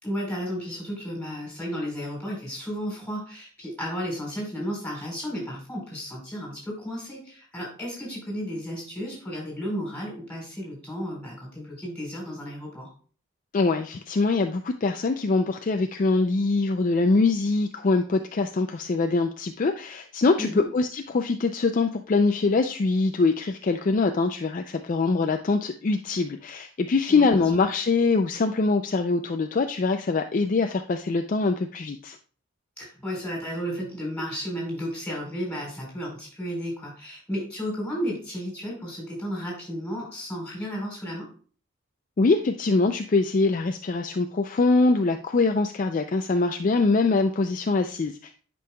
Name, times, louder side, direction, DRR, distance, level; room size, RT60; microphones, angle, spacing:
voice 1, 0.0-12.9 20.4-20.7 27.1-27.4 32.8-41.3, equal, 5° left, -3 dB, 3.8 m, -33 dB
voice 2, 13.5-32.2 42.2-48.3, left 3 dB, 40° left, 6 dB, 0.4 m, -23 dB
10.5 x 5.4 x 2.2 m, 0.42 s
head